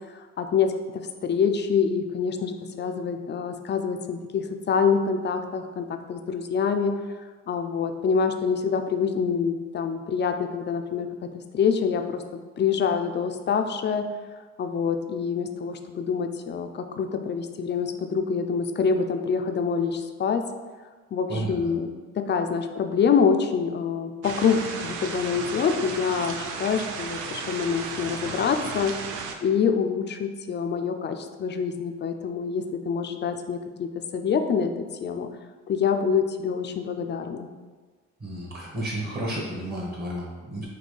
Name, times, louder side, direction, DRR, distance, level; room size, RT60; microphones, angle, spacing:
voice 1, 0.1-0.7 1.2-6.9 7.5-11.1 11.5-12.2 12.6-14.0 14.6-20.4 21.1-28.9 29.4-34.7 35.0-35.3 35.7-37.5, left 6 dB, 35° left, 6 dB, 0.4 m, -26 dB
sound 1, 24.2-29.3, right 5 dB, 90° right, 0.5 m, -34 dB
voice 2, 38.2-40.7, right 1 dB, 30° right, -4 dB, 1.3 m, -32 dB
4.2 x 2.8 x 3.2 m, 1.4 s
cardioid pair, 90°, 30 cm